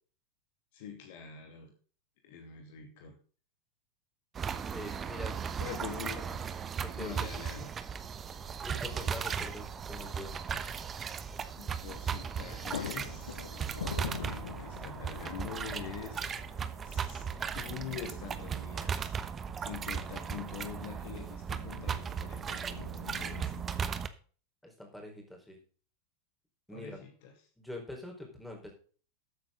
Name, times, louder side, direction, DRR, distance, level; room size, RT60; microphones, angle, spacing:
voice 1, 0.7-1.7 2.2-3.2 5.6-6.4 6.9-7.7 8.3-8.4 11.6-13.4 14.0-17.3 17.5-19.1 19.6-23.6 26.7-27.3, left 8 dB, 50° left, 4 dB, 2.5 m, -45 dB
sound 1, 4.3-24.1, right 7 dB, 20° right, 1.0 m, -37 dB
voice 2, 4.7-5.5 6.3-6.4 6.8-7.3 8.6-10.4 24.6-25.6 26.7-27.0 27.6-28.7, left 1 dB, 5° left, 1 dB, 4.5 m, -44 dB
sound 2, 12.5-23.8, left 8 dB, 65° left, 0.7 m, -46 dB
13.5 x 8.8 x 3.8 m, 0.41 s
figure-of-eight pair, 90°, 0 cm